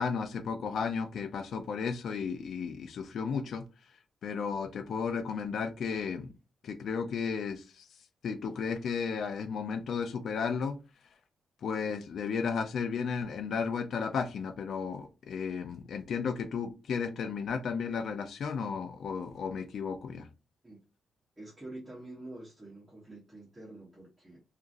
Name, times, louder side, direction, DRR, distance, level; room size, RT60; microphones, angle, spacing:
voice 1, 0.0-3.6 4.2-6.3 6.6-7.9 8.2-10.8 11.6-20.3, left 6 dB, 65° left, 8 dB, 0.4 m, -34 dB
voice 2, 21.4-24.4, right 2 dB, 10° right, -5 dB, 1.0 m, -47 dB
2.8 x 2.5 x 2.5 m, 0.30 s
cardioid pair, 115°, 0 cm